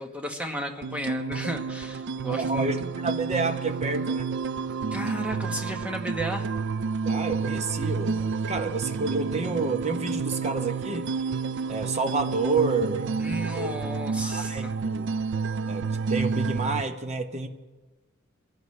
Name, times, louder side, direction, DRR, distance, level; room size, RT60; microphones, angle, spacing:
voice 1, 0.0-2.8 4.9-6.5 13.2-14.7, equal, 5° right, 3 dB, 1.3 m, -34 dB
sound 1, 0.8-16.8, right 5 dB, 55° right, 0.4 m, -30 dB
voice 2, 2.3-4.3 7.0-11.1 11.7-13.1 13.5-13.9 14.2-15.1 15.7-17.5, right 3 dB, 30° right, 7 dB, 0.9 m, -29 dB
23.5 x 16.5 x 3.3 m, 1.3 s
head